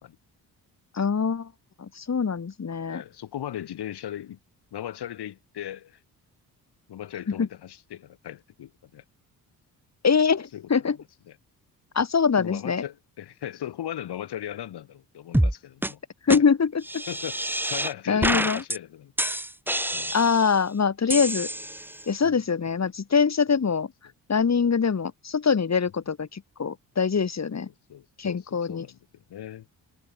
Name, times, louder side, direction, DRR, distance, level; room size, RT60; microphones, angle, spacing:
voice 1, 0.9-1.5 1.8-3.0 7.3-7.5 10.0-11.0 11.9-12.8 16.2-17.0 18.1-18.6 20.1-21.5 22.1-23.9 24.3-27.7 28.2-28.8, left 6 dB, 40° left, 2.6 m, -24 dB
voice 2, 2.9-4.4 4.7-6.0 6.9-9.0 10.5-10.8 11.3-11.4 12.4-16.0 16.3-16.4 17.1-17.4 17.7-19.1 19.9-20.1 22.2-22.8 23.5-23.6 27.9-29.7, left 11 dB, 70° left, 2.9 m, -38 dB
sound 1, 15.3-15.5 15.8-15.9 16.3-16.4 16.8-17.9 18.2-18.8 19.2-20.6 21.1-22.0, right 1 dB, 5° right, 1.8 m, -27 dB
supercardioid pair, 55°, 41 cm